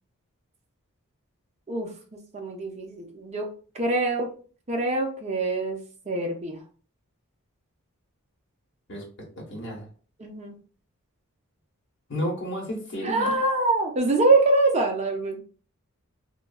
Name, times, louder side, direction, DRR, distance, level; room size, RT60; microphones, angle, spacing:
voice 1, 1.7-3.5 3.7-4.3 4.7-5.8 6.1-6.6 10.2-10.6 13.0-15.4, right 2 dB, 30° right, 2 dB, 0.5 m, -24 dB
voice 2, 9.4-9.9 12.1-13.3, equal, 55° left, -3 dB, 1.1 m, -32 dB
3.1 x 2.3 x 2.3 m, 0.40 s
head